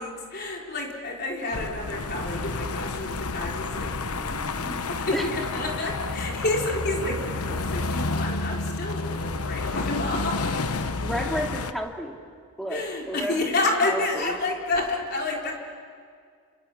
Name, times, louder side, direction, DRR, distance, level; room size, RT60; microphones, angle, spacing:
voice 1, 0.0-10.8 12.7-15.5, left 2 dB, 45° left, -1 dB, 4.2 m, -30 dB
sound 1, 1.5-11.7, left 3 dB, 85° left, 1.1 m, -30 dB
voice 2, 11.0-12.2 12.6-13.5 13.8-14.3, equal, ahead, 1 dB, 2.4 m, -31 dB
29.5 x 28.0 x 7.2 m, 2.1 s
head